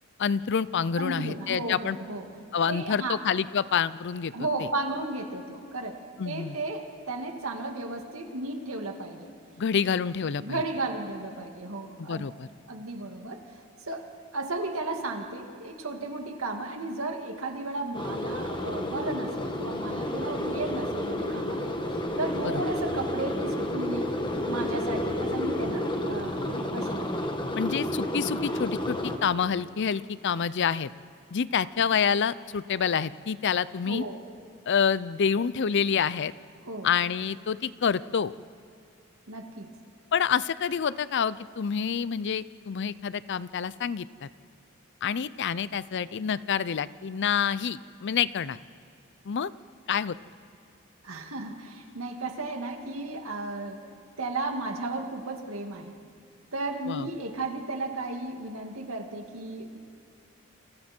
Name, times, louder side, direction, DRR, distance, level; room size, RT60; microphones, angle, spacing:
voice 1, 0.2-2.0 2.5-4.3 4.6-4.7 6.2-6.6 9.6-10.6 12.0-12.5 22.5-22.6 27.5-30.9 31.3-34.0 34.7-36.3 36.8-38.3 40.1-44.3 45.0-48.6 49.2-49.5 49.9-50.2 56.9-57.1, left 7 dB, 55° left, 17 dB, 0.5 m, -27 dB
voice 2, 1.0-2.3 2.7-3.2 4.3-6.0 6.3-9.3 10.4-12.2 12.7-13.4 13.9-14.0 14.3-24.1 24.5-27.1 33.8-34.2 36.7-36.9 39.3-39.7 51.0-53.8 54.2-55.9 56.5-59.8, right 2 dB, 80° right, 3 dB, 2.3 m, -34 dB
sound 1, 17.9-29.2, left 1 dB, 25° left, 1.6 m, -30 dB
29.0 x 27.0 x 4.5 m, 2.3 s
head